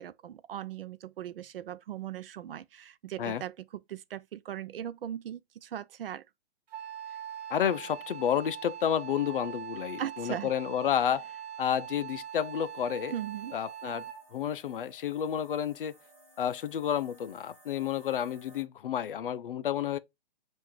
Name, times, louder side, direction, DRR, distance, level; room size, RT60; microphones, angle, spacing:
voice 1, 0.0-6.2 10.0-10.5 13.1-13.6, right 10 dB, 60° right, 0.5 m, -39 dB
Wind instrument woodwind instrument, 6.7-14.3, right 10 dB, 40° right, 1.3 m, -42 dB
voice 2, 7.5-11.3 11.6-13.1 13.5-14.1 14.3-16.0 16.4-20.0, left 9 dB, 55° left, 0.5 m, -30 dB
sound 1, 12.1-18.6, right 1 dB, ahead, 1.8 m, -60 dB
5.6 x 2.5 x 3.1 m
hypercardioid pair, 170°, 32 cm